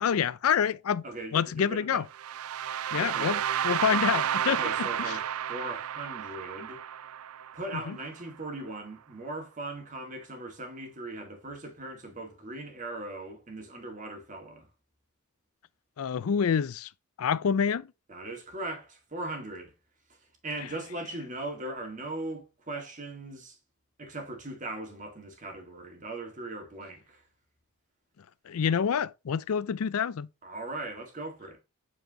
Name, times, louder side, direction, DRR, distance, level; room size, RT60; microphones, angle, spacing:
voice 1, 0.0-1.0 1.3-2.1 2.9-4.6 5.0-5.2 7.9-8.0 16.0-16.9 17.2-17.9 28.5-30.3, left 7 dB, 80° left, 0.4 m, -27 dB
voice 2, 1.0-2.1 3.0-3.4 3.9-4.0 4.4-6.8 7.5-14.7 18.1-19.7 20.4-23.6 24.0-27.2 30.4-31.6, right 2 dB, 35° right, 2.0 m, -39 dB
sound 1, 2.1-8.1, right 10 dB, 85° right, 0.4 m, -31 dB
7.7 x 4.7 x 2.9 m
head